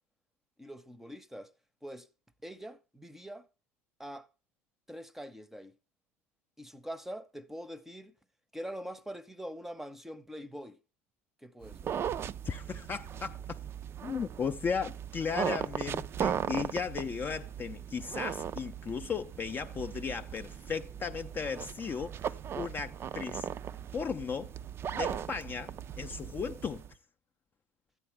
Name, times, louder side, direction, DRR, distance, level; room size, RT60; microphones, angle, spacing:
voice 1, 0.6-1.5 1.8-2.1 2.4-3.5 4.0-4.3 4.9-5.7 6.6-8.1 8.5-10.8 11.4-11.9, equal, 5° right, 0.7 m, -43 dB
sound 1, 11.6-26.9, right 8 dB, 35° right, 0.4 m, -38 dB
voice 2, 12.4-13.6 14.0-23.5 23.9-24.5 24.9-26.8, left 6 dB, 25° left, 0.5 m, -36 dB
12.0 x 8.7 x 3.4 m
hypercardioid pair, 90°, 7 cm